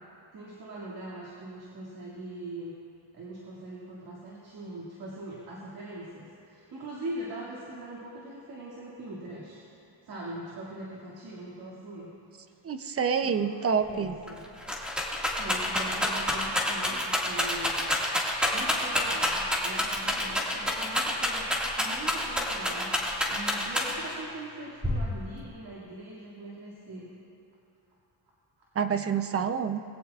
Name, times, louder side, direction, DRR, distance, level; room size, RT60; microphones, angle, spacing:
voice 1, 0.3-2.7 3.1-12.1 12.5-12.6 13.2-14.4 15.4-17.8 18.5-21.5 21.8-23.0 23.3-27.1, right 1 dB, 60° right, -6 dB, 2.3 m, -41 dB
voice 2, 12.6-14.1 28.8-29.8, right 6 dB, 35° right, 9 dB, 0.6 m, -27 dB
Rattle, 13.9-14.0 14.3-24.2 24.8-25.5, left 1 dB, ahead, 1.9 m, -28 dB
22.0 x 16.5 x 2.4 m, 2.7 s
wide cardioid pair, 155°, 43 cm